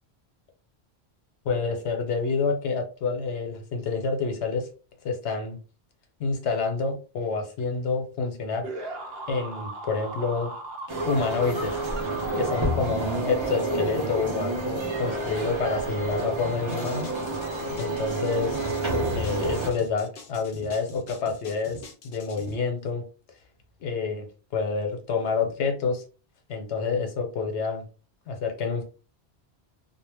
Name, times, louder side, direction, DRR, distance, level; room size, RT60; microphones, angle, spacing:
voice 1, 1.4-4.7 5.0-5.6 6.2-8.6 9.3-10.5 11.1-11.8 12.4-17.1 17.8-18.6 19.1-21.8 22.0-23.0 23.8-24.3 24.5-26.0 26.5-27.8 28.3-28.8, left 4 dB, 80° left, 0.9 m, -28 dB
sound 1, 8.6-14.7, right 2 dB, 70° right, 0.8 m, -37 dB
sound 2, 10.9-19.7, right 2 dB, 35° right, 0.5 m, -29 dB
sound 3, 16.7-22.6, left 2 dB, 60° left, 0.7 m, -44 dB
2.1 x 2.0 x 3.2 m
omnidirectional pair, 1.1 m